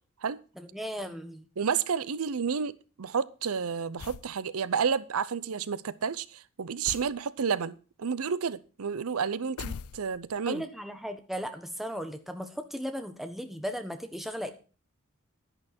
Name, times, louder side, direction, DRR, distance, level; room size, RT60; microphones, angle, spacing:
voice 1, 0.6-1.5 10.4-14.5, equal, ahead, 1.2 m, -36 dB
voice 2, 1.6-10.6, right 6 dB, 80° right, 0.6 m, -31 dB
sound 1, 4.0-4.4 6.9-7.2 9.6-10.4, left 6 dB, 80° left, 0.5 m, -40 dB
11.0 x 11.0 x 4.3 m
head